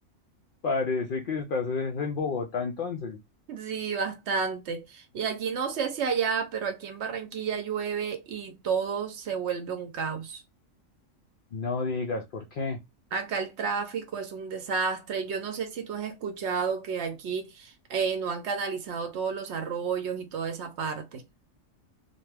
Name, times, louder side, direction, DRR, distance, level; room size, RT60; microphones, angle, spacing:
voice 1, 0.6-3.2 11.5-12.8, left 4 dB, 70° left, 0.5 m, -30 dB
voice 2, 3.5-10.4 13.1-21.2, right 6 dB, 65° right, 0.8 m, -31 dB
2.6 x 2.2 x 3.2 m
omnidirectional pair, 1.4 m